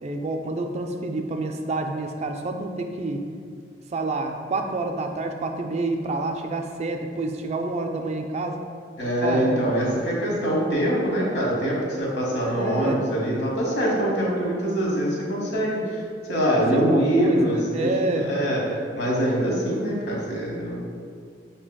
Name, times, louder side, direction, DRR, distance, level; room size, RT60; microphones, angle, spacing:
voice 1, 0.0-3.3 3.9-8.6 9.2-9.7 12.4-13.1 16.6-18.3, right 2 dB, 40° right, 4 dB, 0.3 m, -28 dB
voice 2, 9.0-16.0 16.3-20.8, equal, 70° left, -4 dB, 1.2 m, -24 dB
6.9 x 2.7 x 2.2 m, 2.2 s
head